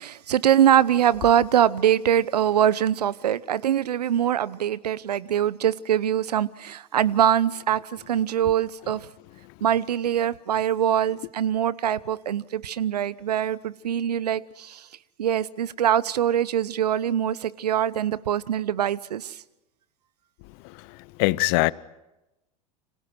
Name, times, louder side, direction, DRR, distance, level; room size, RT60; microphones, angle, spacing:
voice 1, 0.0-9.1 9.6-14.9 15.2-19.4, right 10 dB, 75° right, 0.9 m, -23 dB
voice 2, 20.6-21.7, left 23 dB, 50° left, 0.9 m, -23 dB
29.5 x 26.5 x 6.3 m
hypercardioid pair, 85°, 20 cm